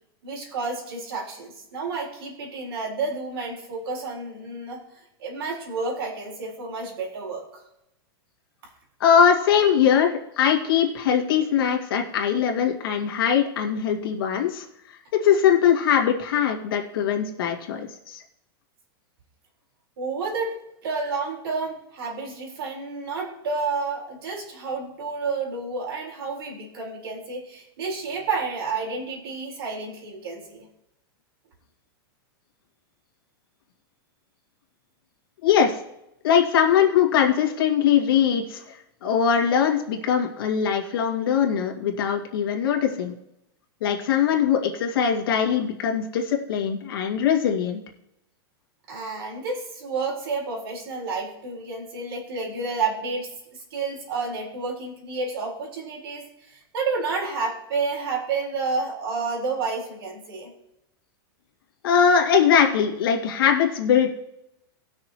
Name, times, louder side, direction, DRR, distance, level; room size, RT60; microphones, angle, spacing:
voice 1, 0.2-7.6 20.0-20.6 20.8-30.7 48.9-60.5, right 4 dB, 75° right, -1 dB, 4.3 m, -30 dB
voice 2, 9.0-14.6 15.1-18.2 35.4-35.8 36.2-43.1 43.8-47.8 61.8-64.1, left 8 dB, 70° left, 2 dB, 2.1 m, -21 dB
19.0 x 6.5 x 3.0 m, 0.83 s
supercardioid pair, 175°, 13 cm